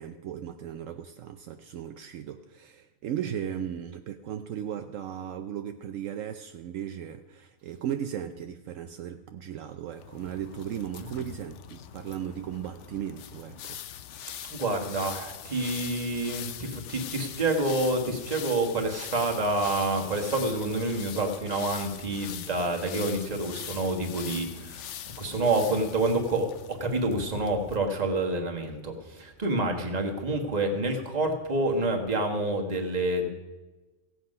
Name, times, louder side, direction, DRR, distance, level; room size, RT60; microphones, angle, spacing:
voice 1, 0.0-13.8, right 10 dB, 75° right, 7 dB, 1.0 m, -36 dB
sound 1, 10.0-27.8, left 10 dB, 65° left, 0.9 m, -42 dB
voice 2, 14.4-24.9 25.2-33.3, right 2 dB, 30° right, 2 dB, 1.5 m, -28 dB
16.0 x 8.0 x 5.3 m, 1.2 s
omnidirectional pair, 1.4 m